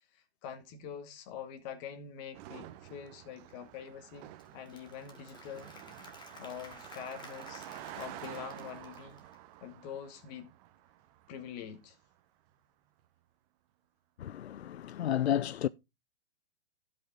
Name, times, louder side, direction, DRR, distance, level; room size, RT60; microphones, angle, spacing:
voice 1, 0.4-5.7 6.4-7.7 7.9-9.2 9.6-10.5 11.3-12.0, left 8 dB, 40° left, 2.4 m, -45 dB
Car passing by, 2.3-11.9, right 14 dB, 35° right, 1.1 m, -50 dB
Applause / Crowd, 4.1-9.5, left 3 dB, 15° left, 1.9 m, -54 dB
voice 2, 14.2-15.7, left 11 dB, 80° left, 0.5 m, -31 dB
16.0 x 5.7 x 3.7 m
hypercardioid pair, 120°, 32 cm